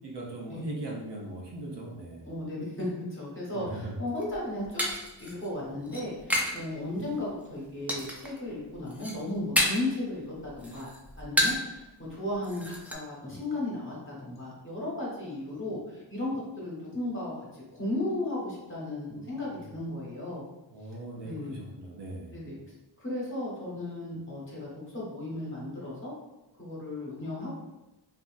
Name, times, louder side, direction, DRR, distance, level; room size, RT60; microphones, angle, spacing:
voice 1, 0.0-2.3 3.5-3.9 19.1-19.7 20.7-22.5, right 2 dB, 60° right, -2 dB, 0.8 m, -40 dB
voice 2, 2.2-4.8 5.2-10.9 11.2-17.4 17.7-20.4 21.2-21.6 22.3-22.6 23.0-26.1 26.6-27.6, left 1 dB, 25° left, -5 dB, 1.1 m, -35 dB
sound 1, 4.1-6.6 6.9-7.4 7.9-8.4 8.7-10.0 10.3-11.7 12.1-12.2 12.4-12.9, equal, 5° right, 0.3 m, -30 dB
2.8 x 2.6 x 2.5 m, 0.99 s
cardioid pair, 90°, 46 cm